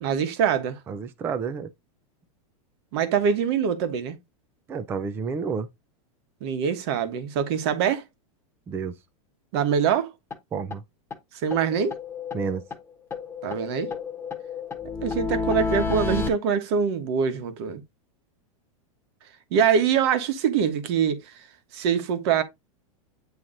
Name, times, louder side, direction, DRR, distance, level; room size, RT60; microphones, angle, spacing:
voice 1, 0.0-0.8 2.9-4.2 6.4-8.0 9.5-10.1 11.4-11.9 13.4-13.9 15.0-17.8 19.5-21.2 21.7-22.4, right 7 dB, 50° right, 1.3 m, -24 dB
voice 2, 0.9-1.7 4.7-5.7 8.7-8.9 10.5-10.8 12.3-12.6, right 5 dB, 15° right, 0.4 m, -30 dB
sound 1, 9.9-10.0 10.3-10.4 10.7-10.8 11.1-11.2 11.5-12.8 13.1-16.3, left 4 dB, 15° left, 1.1 m, -30 dB
8.8 x 3.1 x 3.9 m
supercardioid pair, 160°, 18 cm